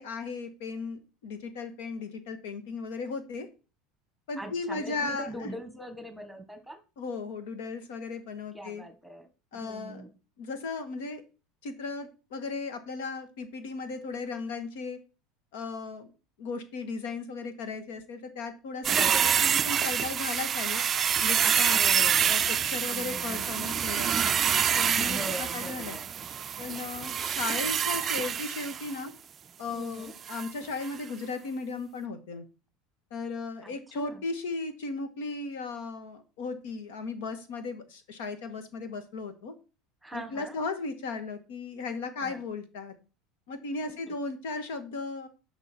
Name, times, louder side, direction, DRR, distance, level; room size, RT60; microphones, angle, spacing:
voice 1, 0.0-3.5 4.3-5.5 7.0-8.8 9.5-10.0 10.4-11.2 11.6-15.0 15.5-16.1 16.4-19.0 19.2-20.8 21.2-21.8 22.1-24.4 24.7-26.0 26.6-29.1 29.6-32.4 33.1-39.5 40.1-42.9 43.5-45.3, left 4 dB, 85° left, 9 dB, 1.8 m, -36 dB
voice 2, 4.4-6.8 8.5-9.3 9.5-10.1 18.9-19.4 21.7-22.3 22.9-23.4 25.0-26.1 29.7-30.1 33.6-34.2 40.0-40.6 42.2-42.4 44.1-44.2, right 1 dB, ahead, 7 dB, 1.5 m, -41 dB
sound 1, 18.8-29.0 30.3-30.5 30.8-30.9, right 8 dB, 25° right, 0.3 m, -27 dB
11.0 x 5.6 x 4.5 m, 0.33 s
supercardioid pair, 150°, 0 cm